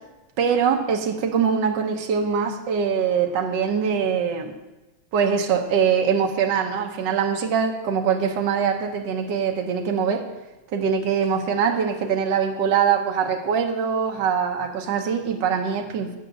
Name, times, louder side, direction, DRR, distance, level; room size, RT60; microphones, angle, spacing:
voice 1, 0.4-4.5 5.1-10.3 10.7-16.1, right 7 dB, 70° right, 3 dB, 1.5 m, -23 dB
7.8 x 5.8 x 7.7 m, 1.1 s
omnidirectional pair, 2.1 m